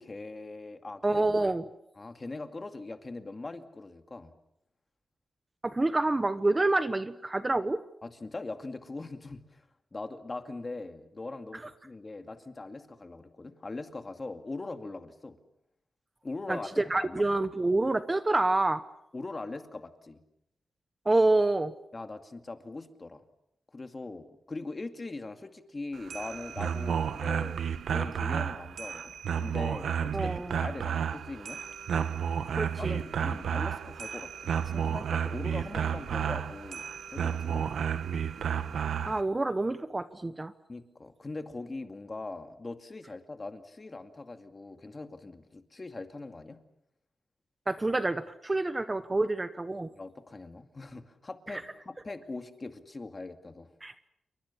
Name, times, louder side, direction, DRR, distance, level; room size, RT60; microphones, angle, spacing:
voice 1, 0.0-1.2 2.0-4.3 8.0-9.6 9.9-15.4 16.2-17.2 19.1-20.2 21.9-23.2 23.7-27.6 27.9-31.6 32.4-37.7 40.7-46.6 49.9-53.7, left 3 dB, 25° left, 7 dB, 2.3 m, -41 dB
voice 2, 1.0-1.7 5.6-7.8 11.5-11.6 16.5-18.8 21.0-21.7 30.1-30.6 32.6-33.0 39.1-40.5 47.7-49.9 51.5-51.6 53.8-53.9, right 2 dB, 20° right, 12 dB, 1.0 m, -27 dB
sound 1, 25.9-39.2, right 8 dB, 85° right, 1.3 m, -32 dB
29.0 x 24.0 x 7.0 m, 0.81 s
wide cardioid pair, 125°, 0 cm